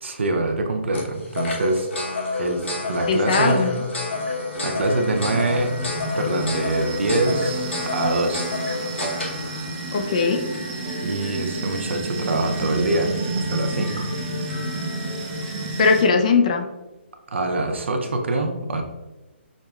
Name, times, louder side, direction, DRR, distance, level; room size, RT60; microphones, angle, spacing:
voice 1, 0.0-1.9 2.4-3.7 4.6-5.8 6.2-8.4 11.0-14.1 17.3-18.8, right 2 dB, 75° right, 4 dB, 0.7 m, -24 dB
sound 1, 0.9-15.7, left 3 dB, 80° left, 1.0 m, -31 dB
voice 2, 3.1-3.8 9.9-10.4 15.8-16.7, left 4 dB, 35° left, 5 dB, 0.4 m, -19 dB
sound 2, 4.1-16.0, right 2 dB, 20° right, 0.5 m, -31 dB
6.3 x 2.1 x 2.3 m, 1.1 s
hypercardioid pair, 165°, 6 cm